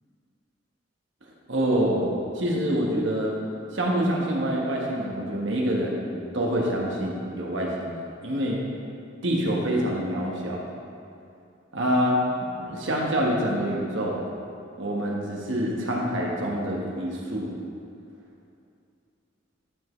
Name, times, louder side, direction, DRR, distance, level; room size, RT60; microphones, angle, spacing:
voice 1, 1.5-2.0 2.3-3.3 3.7-6.0 6.3-8.6 9.2-10.6 11.7-12.2 12.6-14.2 14.8-17.5, equal, 70° right, -2 dB, 1.3 m, -26 dB
12.0 x 5.4 x 3.2 m, 2.5 s
head